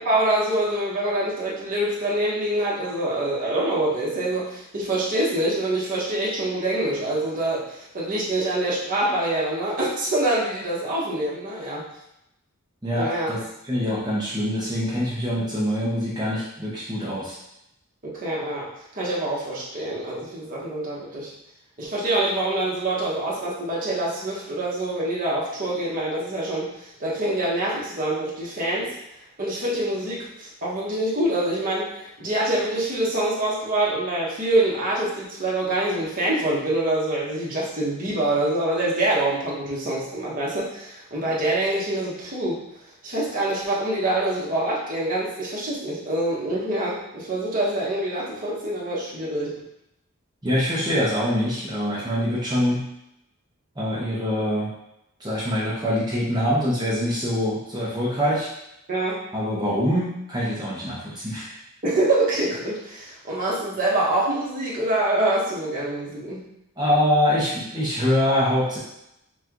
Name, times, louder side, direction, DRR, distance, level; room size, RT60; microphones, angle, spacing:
voice 1, 0.1-11.8 12.9-13.3 18.0-18.7 18.9-21.3 21.8-28.9 29.4-42.6 43.0-49.5 58.9-59.2 61.8-66.4, right 1 dB, 40° right, -6 dB, 1.3 m, -25 dB
voice 2, 12.8-17.4 50.4-52.8 53.8-54.7 55.2-58.5 59.3-61.6 66.8-68.8, equal, 20° right, -7 dB, 0.8 m, -24 dB
5.8 x 2.4 x 3.0 m, 0.83 s
head